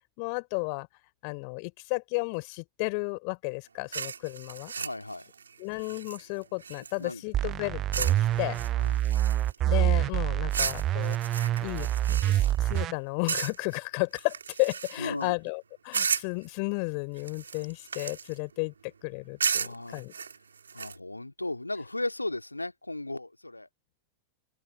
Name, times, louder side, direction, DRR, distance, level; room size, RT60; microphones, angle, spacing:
voice 1, 0.2-0.9 1.2-4.7 5.6-8.6 9.6-18.7 19.0-20.1, left 38 dB, 45° left, 3.9 m, -33 dB
sound 1, 3.9-7.1 7.9-8.2 8.5-9.7 10.5-12.9 13.3-13.8 14.1-15.2 15.9-16.5 17.2-18.4 19.4-21.0, right 6 dB, 70° right, 2.7 m, -34 dB
voice 2, 4.8-5.3 7.0-7.2 8.8-9.0 15.0-15.4 19.5-20.0 20.7-23.7, left 2 dB, 85° left, 2.4 m, -36 dB
sound 2, 7.3-12.9, right 13 dB, 30° right, 0.4 m, -26 dB
open air
figure-of-eight pair, 90°, 0 cm